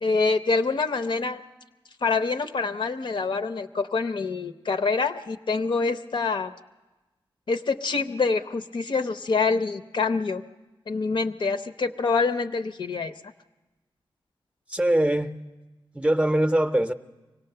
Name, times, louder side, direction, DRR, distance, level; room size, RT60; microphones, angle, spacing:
voice 1, 0.0-1.4 2.0-6.5 7.5-10.4 10.9-13.1, left 4 dB, 60° left, 10 dB, 0.7 m, -26 dB
voice 2, 14.7-15.4 15.9-16.9, right 1 dB, 10° right, 8 dB, 0.6 m, -22 dB
24.5 x 18.0 x 6.7 m, 1.1 s
wide cardioid pair, 125°, 9 cm